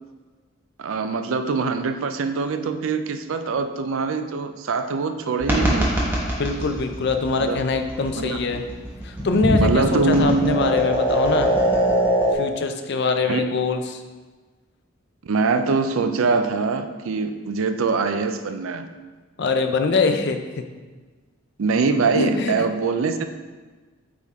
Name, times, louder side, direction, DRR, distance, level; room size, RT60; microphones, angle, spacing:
voice 1, 0.8-6.1 7.4-7.6 8.2-8.4 9.6-10.5 13.3-13.4 15.2-18.9 21.6-23.2, right 4 dB, 70° right, 9 dB, 0.4 m, -23 dB
sound 1, 5.4-12.3, equal, 10° right, 1.1 m, -23 dB
voice 2, 6.4-8.6 9.0-11.5 12.3-14.0 19.4-20.4 22.1-22.5, left 4 dB, 50° left, 6 dB, 0.5 m, -23 dB
8.3 x 3.6 x 3.6 m, 1.3 s
head